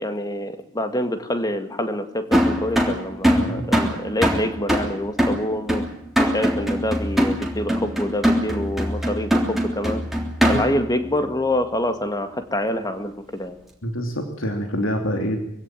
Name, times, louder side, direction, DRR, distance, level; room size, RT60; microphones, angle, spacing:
voice 1, 0.0-5.8 6.2-10.0 10.5-13.6, left 1 dB, 20° left, 8 dB, 2.0 m, -26 dB
sound 1, 2.3-10.9, equal, ahead, 3.4 m, -22 dB
voice 2, 3.3-3.7 10.5-10.6 13.8-15.4, equal, 80° left, 4 dB, 3.0 m, -26 dB
23.0 x 16.5 x 9.1 m, 0.79 s
head